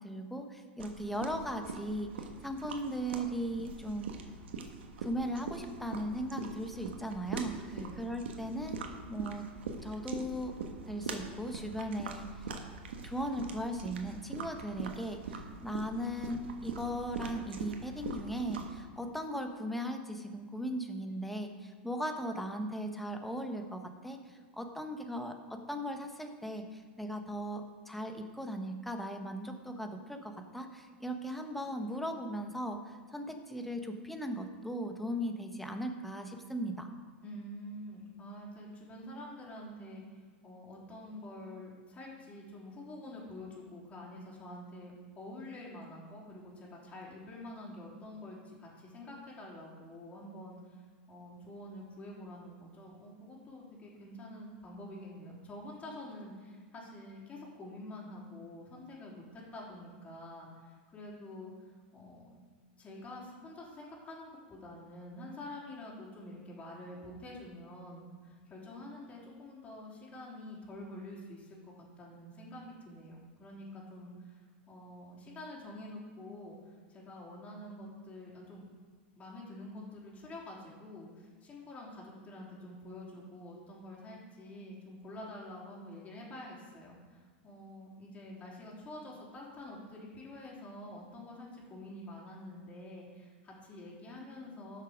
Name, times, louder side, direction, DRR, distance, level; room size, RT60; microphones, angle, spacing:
voice 1, 0.0-2.1 2.4-4.1 5.0-7.5 8.0-8.8 9.1-9.4 9.8-10.5 10.9-12.5 13.0-36.9, equal, ahead, 4 dB, 1.1 m, -38 dB
sound 1, 0.8-18.8, right 4 dB, 85° right, 1.3 m, -43 dB
voice 2, 7.6-8.0 37.2-62.3 62.8-74.4 74.7-78.6 79.2-94.8, left 1 dB, 20° left, -5 dB, 3.5 m, -47 dB
13.0 x 6.5 x 5.1 m, 1.5 s
hypercardioid pair, 125°, 6 cm